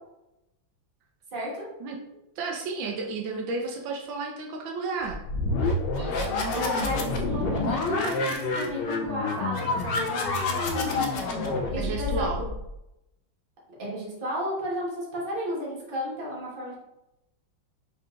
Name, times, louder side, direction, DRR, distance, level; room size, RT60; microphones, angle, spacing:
voice 1, 1.3-1.7 5.9-11.2 11.7-12.5 13.8-16.7, equal, 30° right, -5 dB, 1.4 m, -33 dB
voice 2, 2.4-5.2 7.0-7.6 11.8-12.4, right 4 dB, 80° right, 1 dB, 1.4 m, -32 dB
sound 1, 5.0-12.7, left 3 dB, 75° left, 1.3 m, -28 dB
5.5 x 3.8 x 2.5 m, 0.90 s
omnidirectional pair, 2.1 m